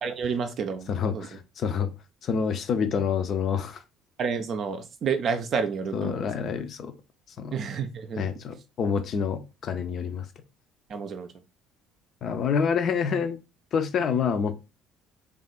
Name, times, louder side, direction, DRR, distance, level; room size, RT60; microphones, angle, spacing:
voice 1, 0.0-1.3 4.2-6.3 7.5-8.3 10.9-11.3, right 6 dB, 45° right, 0.5 m, -30 dB
voice 2, 0.9-1.9 2.2-3.8 5.9-6.9 7.4-7.6 8.2-10.3 12.2-13.4 13.7-14.6, left 6 dB, 45° left, 0.5 m, -27 dB
3.3 x 2.4 x 3.8 m
figure-of-eight pair, 55°, 0 cm